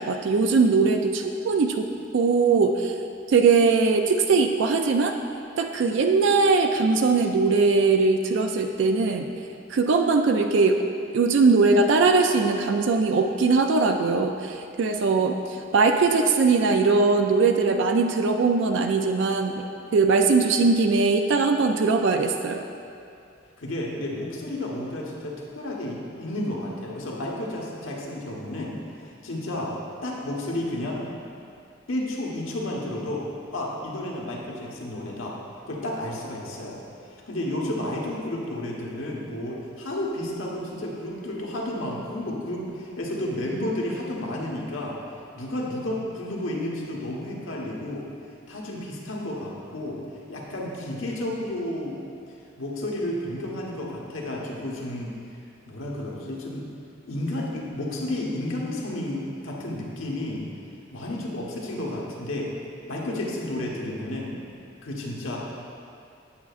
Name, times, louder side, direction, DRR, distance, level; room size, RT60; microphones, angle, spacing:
voice 1, 0.0-1.9 2.1-2.9 3.3-5.1 5.6-9.3 9.7-10.8 11.1-19.6 19.9-22.6, right 4 dB, 65° right, 5 dB, 0.3 m, -21 dB
voice 2, 23.6-29.7 30.0-31.1 31.9-35.4 35.7-36.8 37.1-45.0 45.3-48.1 48.5-50.0 50.3-52.0 52.6-55.1 55.7-56.7 57.1-60.5 60.9-62.5 62.9-64.4 64.8-65.4, left 1 dB, 85° left, -3 dB, 1.2 m, -31 dB
8.6 x 8.0 x 2.4 m, 2.5 s
head